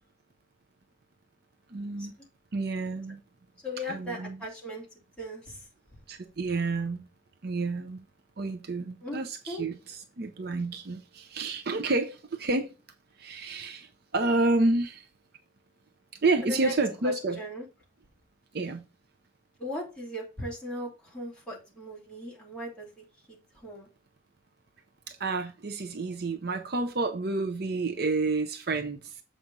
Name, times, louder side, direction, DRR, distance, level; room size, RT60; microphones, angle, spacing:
voice 1, 1.7-2.1 2.5-3.2 3.9-4.4 6.1-7.1 7.4-8.0 8.4-12.7 13.2-15.1 16.2-17.4 18.5-18.9 25.1-29.2, right 3 dB, 50° right, 0.6 m, -29 dB
voice 2, 3.6-4.9 5.2-5.7 9.0-9.2 9.5-9.6 16.4-16.7 17.0-17.7 19.6-23.9, left 1 dB, 5° left, 2.9 m, -38 dB
7.3 x 5.1 x 3.9 m
head